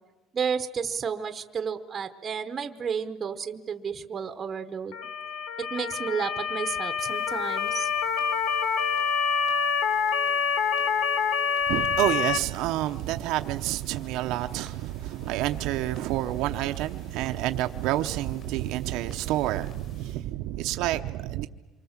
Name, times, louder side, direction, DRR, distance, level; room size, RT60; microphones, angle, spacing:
voice 1, 0.3-5.0 5.6-7.9, right 6 dB, 25° right, 1.0 m, -32 dB
Motor vehicle (road) / Siren, 4.9-12.4, left 6 dB, 65° left, 1.3 m, -26 dB
sound 1, 7.0-20.2, left 4 dB, 45° left, 6.4 m, -56 dB
voice 2, 11.7-21.5, right 14 dB, 70° right, 0.8 m, -28 dB
27.0 x 24.5 x 7.3 m
cardioid pair, 160°, 0 cm